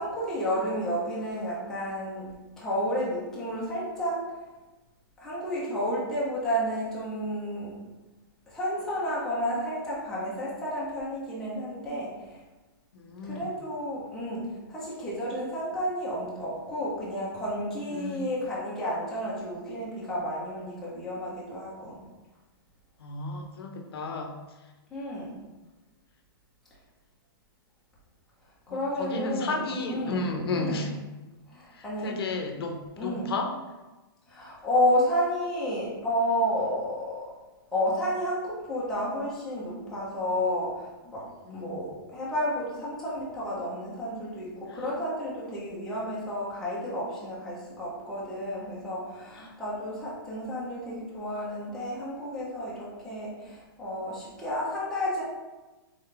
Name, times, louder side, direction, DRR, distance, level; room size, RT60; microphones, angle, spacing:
voice 1, 0.0-2.3 2.6-4.4 5.2-7.8 8.5-12.4 13.2-22.0 24.9-25.4 28.7-30.2 30.5-30.9 31.5-32.2 33.0-33.3 34.3-37.3 37.7-41.3 41.5-55.2, equal, 5° left, -9 dB, 0.8 m, -31 dB
voice 2, 12.9-13.5 17.9-18.2 23.0-24.4 28.7-30.9 31.7-33.5 41.5-41.7 44.7-44.8 49.4-49.5, left 3 dB, 80° left, 3 dB, 0.7 m, -33 dB
3.8 x 3.7 x 3.3 m, 1.1 s
hypercardioid pair, 175°, 13 cm